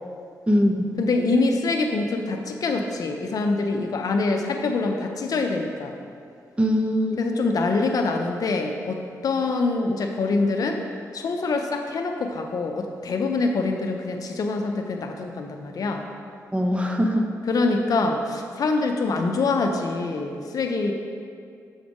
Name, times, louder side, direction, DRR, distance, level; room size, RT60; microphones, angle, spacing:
voice 1, 1.0-5.9 7.2-10.8 11.1-16.1 17.5-20.9, left 3 dB, 65° left, 4 dB, 0.6 m, -25 dB
voice 2, 6.6-7.2 16.5-17.3, equal, 15° right, 2 dB, 0.8 m, -21 dB
7.1 x 3.3 x 5.2 m, 2.3 s
supercardioid pair, 55°, 7 cm